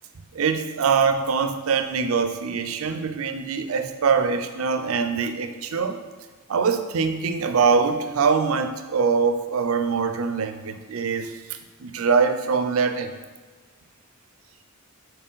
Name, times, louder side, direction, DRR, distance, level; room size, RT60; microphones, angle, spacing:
voice 1, 0.3-6.0 6.5-13.1, right 5 dB, 80° right, 8 dB, 0.5 m, -23 dB
5.7 x 4.1 x 4.0 m, 1.4 s
head